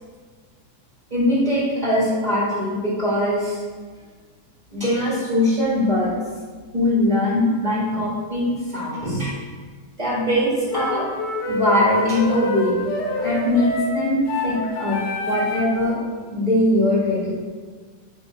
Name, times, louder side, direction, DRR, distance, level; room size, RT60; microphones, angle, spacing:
voice 1, 1.1-3.6 4.7-6.1 6.7-9.4 10.0-11.0 11.5-12.8 13.2-16.0 16.3-17.3, left 1 dB, 40° right, -7 dB, 0.6 m, -21 dB
sound 1, 10.7-15.8, left 2 dB, 70° left, 1.8 m, -26 dB
8.1 x 3.0 x 4.4 m, 1.5 s
omnidirectional pair, 3.5 m